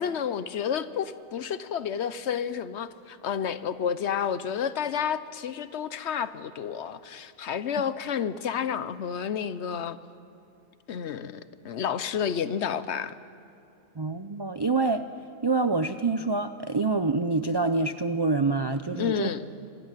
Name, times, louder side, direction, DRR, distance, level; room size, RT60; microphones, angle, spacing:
voice 1, 0.0-10.0 10.9-13.1 18.9-19.4, left 8 dB, 65° left, 14 dB, 1.0 m, -30 dB
voice 2, 14.0-15.1 15.4-19.3, right 3 dB, 45° right, 9 dB, 0.3 m, -26 dB
25.5 x 14.0 x 8.9 m, 2.6 s
omnidirectional pair, 1.3 m